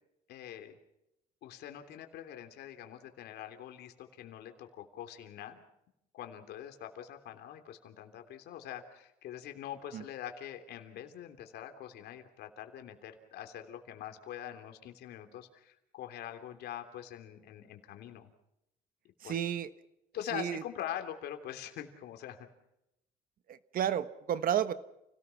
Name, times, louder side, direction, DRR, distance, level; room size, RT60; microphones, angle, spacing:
voice 1, 0.3-0.8 1.4-5.6 6.1-18.3 19.2-19.4 20.1-22.5, left 10 dB, 75° left, 6 dB, 3.2 m, -44 dB
voice 2, 19.2-19.7 20.3-20.6 23.5-24.7, right 9 dB, 55° right, 13 dB, 1.3 m, -32 dB
30.0 x 18.0 x 5.9 m, 0.85 s
cardioid pair, 110°, 17 cm